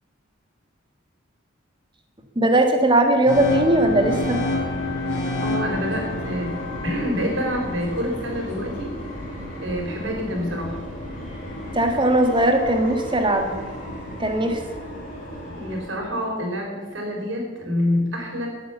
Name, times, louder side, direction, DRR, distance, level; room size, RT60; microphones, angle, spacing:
voice 1, 2.3-4.4 11.7-13.6 14.2-14.6, right 1 dB, 25° right, 5 dB, 1.7 m, -19 dB
sound 1, 3.3-9.2, left 2 dB, 60° left, 3.6 m, -29 dB
sound 2, 3.3-15.8, equal, 40° left, 4.3 m, -35 dB
voice 2, 5.4-6.5 6.8-8.9 9.6-10.8 15.5-18.5, left 1 dB, 65° right, 0 dB, 4.4 m, -27 dB
17.0 x 8.8 x 7.1 m, 1.4 s
head